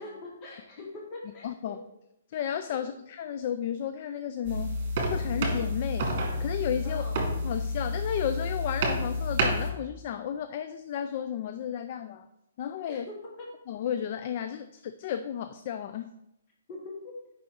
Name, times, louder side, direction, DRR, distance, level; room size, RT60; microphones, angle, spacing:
voice 1, 0.0-1.7 2.7-2.8 6.8-7.3 12.8-13.5 16.7-17.1, left 2 dB, 30° left, -2 dB, 1.3 m, -42 dB
voice 2, 1.4-1.8 2.3-4.8 5.1-6.1 6.4-7.0 7.4-12.3 12.6-13.0 13.7-16.1, left 9 dB, 45° left, 9 dB, 0.3 m, -33 dB
sound 1, 4.4-9.7, equal, 45° right, 2.0 m, -29 dB
5.5 x 5.4 x 4.6 m, 0.84 s
hypercardioid pair, 150°, 0 cm